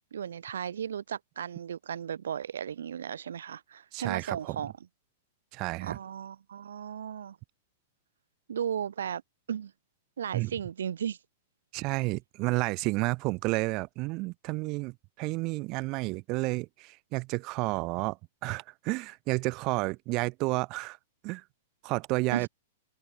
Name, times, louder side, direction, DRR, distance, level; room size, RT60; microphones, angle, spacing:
voice 1, 0.1-4.7 5.8-7.4 8.5-9.2 9.5-9.7 10.2-11.2 22.3-22.5, right 8 dB, 85° right, 2.0 m, -35 dB
voice 2, 3.9-4.6 5.5-6.0 10.3-10.5 11.7-18.2 18.4-21.0 21.2-21.4 21.8-22.5, right 24 dB, 40° right, 3.6 m, -31 dB
open air
hypercardioid pair, 130°, 0 cm